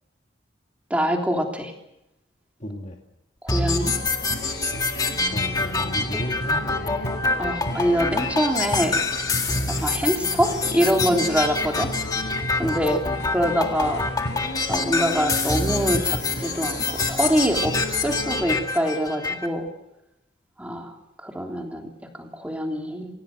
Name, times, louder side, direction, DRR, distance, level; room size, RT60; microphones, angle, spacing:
voice 1, 0.9-1.7 3.4-3.9 6.1-6.2 7.4-9.0 9.7-11.9 12.6-13.0 13.3-14.0 14.7-19.7 20.6-21.0 21.2-21.9 22.2-23.1, equal, 5° right, 1 dB, 3.3 m, -24 dB
voice 2, 2.6-3.0 5.3-7.0 9.6-9.8 12.6-12.8, left 1 dB, 35° left, 0 dB, 2.2 m, -35 dB
sound 1, 3.5-19.5, left 3 dB, 20° left, 1.9 m, -26 dB
sound 2, 3.8-18.5, left 1 dB, 60° left, 5.5 m, -34 dB
26.0 x 17.5 x 7.8 m, 0.87 s
head